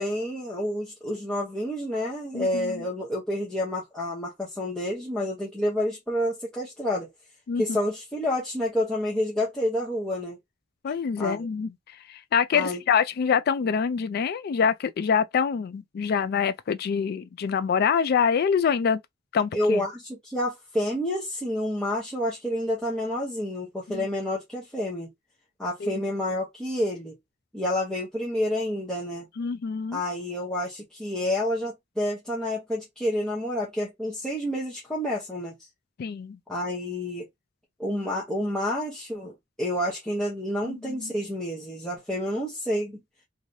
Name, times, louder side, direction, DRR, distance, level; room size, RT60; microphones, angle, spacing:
voice 1, 0.0-7.1 7.6-10.4 11.2-11.5 12.5-12.8 19.5-25.1 25.6-27.2 27.5-29.3 29.9-35.5 36.5-37.3 37.8-43.0, left 1 dB, 5° left, 0.8 m, -29 dB
voice 2, 2.3-2.9 7.5-7.6 10.8-11.7 12.1-19.0 19.3-19.8 23.9-24.1 25.8-25.9 29.4-30.0 36.0-36.4 40.6-41.1, left 6 dB, 50° left, 0.3 m, -25 dB
3.2 x 2.6 x 2.6 m
head